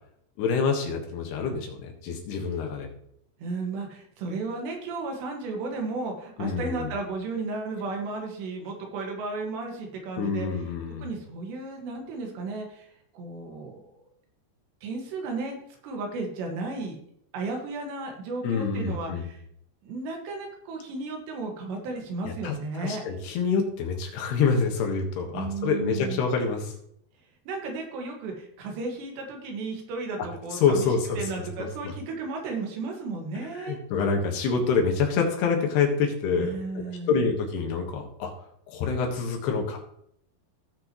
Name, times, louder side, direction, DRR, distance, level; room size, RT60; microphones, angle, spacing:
voice 1, 0.4-2.9 6.4-6.9 10.2-11.0 18.4-19.3 22.2-26.7 30.5-31.2 31.8-31.9 33.6-36.6 37.1-38.3 38.7-39.8, left 5 dB, 75° left, 2 dB, 3.5 m, -26 dB
voice 2, 3.4-10.6 11.0-13.8 14.8-17.0 17.3-19.4 19.8-23.0 25.3-26.2 27.5-30.9 31.2-33.8 36.4-37.3, right 3 dB, 85° right, 2 dB, 3.9 m, -34 dB
17.0 x 6.1 x 3.0 m, 0.71 s
omnidirectional pair, 4.8 m